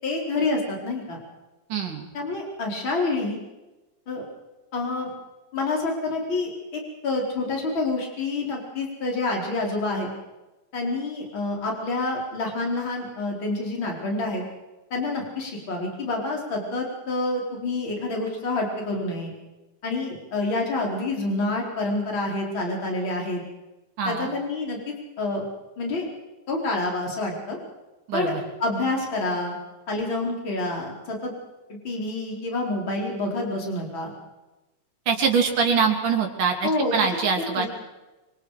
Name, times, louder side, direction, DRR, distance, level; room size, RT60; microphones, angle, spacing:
voice 1, 0.0-1.2 2.1-3.4 4.1-4.2 4.7-5.1 5.5-10.1 10.7-14.4 14.9-19.3 19.8-23.4 24.1-24.8 25.2-25.4 25.8-26.1 26.5-27.6 28.1-28.3 28.6-29.6 29.9-31.3 31.7-34.1 36.6-36.9 37.4-37.7, left 2 dB, 40° left, -1 dB, 5.3 m, -27 dB
voice 2, 1.7-2.0 24.0-24.3 28.1-28.4 35.1-37.7, right 5 dB, 85° right, 2 dB, 4.6 m, -23 dB
26.5 x 25.0 x 5.1 m, 1.1 s
omnidirectional pair, 3.5 m